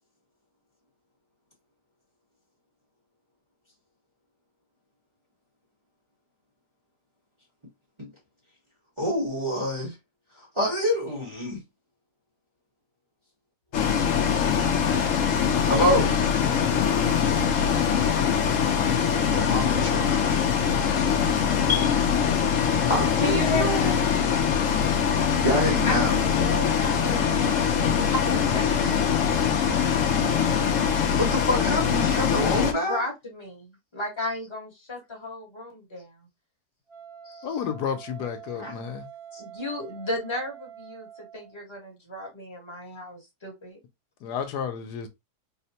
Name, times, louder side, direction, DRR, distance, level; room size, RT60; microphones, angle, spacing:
voice 1, 9.0-9.9 10.3-11.6 15.6-16.2 19.2-20.4 21.7-21.9 22.9-24.2 25.4-26.2 28.2-28.4 31.1-33.0 38.6-38.7 39.3-39.4, equal, 20° right, 1.0 m, -27 dB
Bus, 13.7-32.7, left 7 dB, 65° left, 0.9 m, -23 dB
voice 2, 23.2-23.9 25.8-29.4 32.4-36.1 37.2-37.5 39.4-43.8, left 2 dB, 20° left, 1.1 m, -34 dB
Wind instrument woodwind instrument, 36.9-41.6, right 9 dB, 70° right, 2.0 m, -45 dB
voice 3, 37.4-39.1 44.2-45.1, left 7 dB, 80° left, 1.2 m, -31 dB
4.1 x 2.1 x 2.7 m
omnidirectional pair, 1.7 m